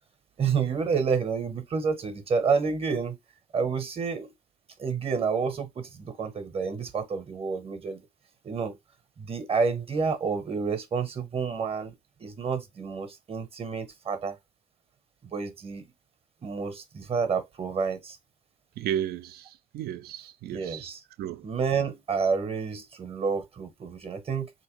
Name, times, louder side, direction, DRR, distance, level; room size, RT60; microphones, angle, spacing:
voice 1, 0.4-3.2 3.5-4.3 4.8-8.0 8.4-8.8 9.2-11.9 12.2-14.4 15.2-15.9 16.4-18.2 20.5-21.0 21.4-24.5, right 5 dB, 35° right, 0.8 m, -29 dB
voice 2, 18.8-20.9 21.2-21.5, right 10 dB, 65° right, 0.5 m, -34 dB
3.4 x 2.8 x 3.0 m
cardioid pair, 110°, 17 cm